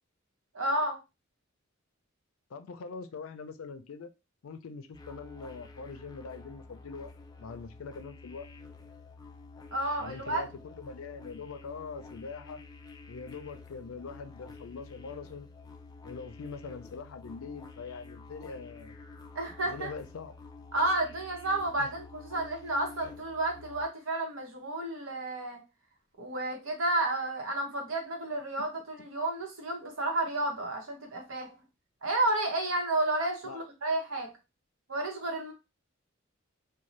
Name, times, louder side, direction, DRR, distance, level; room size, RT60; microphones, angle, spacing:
voice 1, 0.5-1.0 9.7-10.4 19.3-19.9 20.7-25.6 26.2-31.6 32.0-34.3 34.9-35.5, right 2 dB, 80° right, 0.9 m, -31 dB
voice 2, 2.5-4.1 4.4-7.1 7.4-8.5 10.0-12.6 13.1-15.5 16.0-18.9 19.6-20.3 21.8-21.9 33.4-33.6, left 4 dB, 90° left, 0.4 m, -43 dB
sound 1, 4.9-23.9, left 3 dB, 20° left, 0.3 m, -50 dB
2.6 x 2.2 x 3.1 m
head